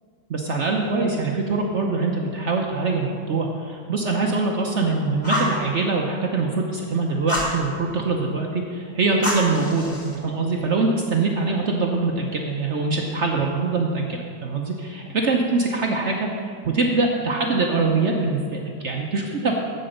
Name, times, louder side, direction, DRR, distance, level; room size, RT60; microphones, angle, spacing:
voice 1, 0.3-19.5, right 3 dB, 70° right, 1 dB, 0.6 m, -23 dB
Fire, 5.2-5.6 7.3-7.6 9.2-10.1, equal, 20° left, 2.9 m, -26 dB
8.1 x 7.9 x 6.5 m, 2.3 s
omnidirectional pair, 2.2 m